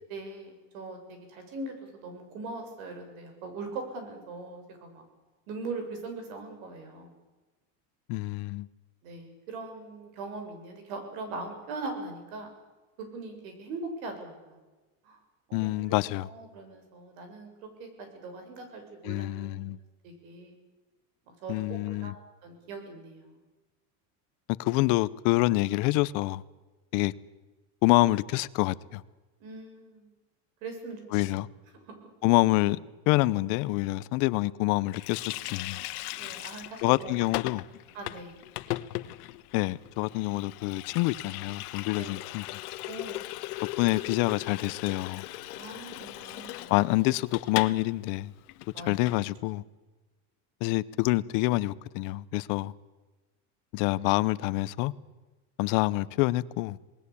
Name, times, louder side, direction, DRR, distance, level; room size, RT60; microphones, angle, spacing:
voice 1, 0.1-5.0 5.5-7.1 9.0-12.5 13.0-14.6 15.0-15.2 15.5-15.7 16.2-17.5 17.8-19.5 20.0-20.6 21.4-23.4 29.4-30.1 30.6-31.4 31.9-32.0 36.2-37.1 37.9-38.4 42.0-42.1 42.9-43.2 45.6-46.8 48.7-48.9, right 3 dB, 65° right, 7.3 m, -41 dB
voice 2, 8.1-8.7 15.5-16.3 19.0-19.8 21.5-22.1 24.6-26.4 26.9-27.1 27.8-29.0 31.1-31.5 32.2-32.8 33.1-35.8 36.8-37.6 39.5-42.5 43.8-45.2 46.7-48.3 48.9-49.6 50.6-52.7 53.7-54.9 55.6-56.8, left 20 dB, 45° left, 0.8 m, -26 dB
Water tap faucet, 34.9-47.8 48.1-48.2 48.5-49.2, left 18 dB, 75° left, 1.3 m, -38 dB
27.0 x 19.5 x 8.5 m
supercardioid pair, 170°, 45 cm